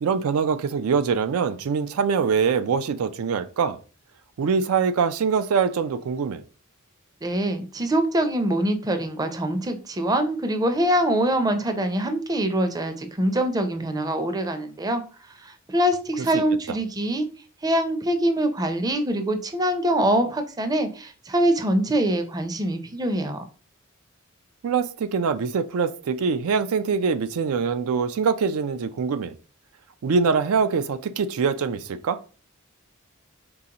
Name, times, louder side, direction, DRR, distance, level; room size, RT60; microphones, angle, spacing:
voice 1, 0.0-3.8 4.4-6.4 16.3-16.4 24.6-29.3 30.0-32.2, right 5 dB, 85° right, 0.4 m, -23 dB
voice 2, 7.2-15.0 15.4-17.3 17.6-23.4, right 1 dB, 20° right, 0.5 m, -24 dB
4.0 x 3.8 x 2.8 m
head